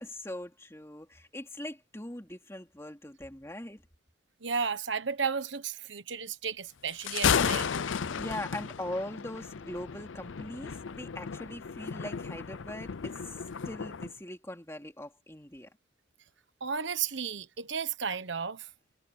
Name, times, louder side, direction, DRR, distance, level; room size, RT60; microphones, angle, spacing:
voice 1, 0.0-3.8 8.2-15.7, left 1 dB, 15° left, 2.9 m, -41 dB
voice 2, 4.4-7.7 16.6-18.7, right 6 dB, 70° right, 1.2 m, -33 dB
Thunder, 6.9-14.1, left 7 dB, 85° left, 0.6 m, -33 dB
head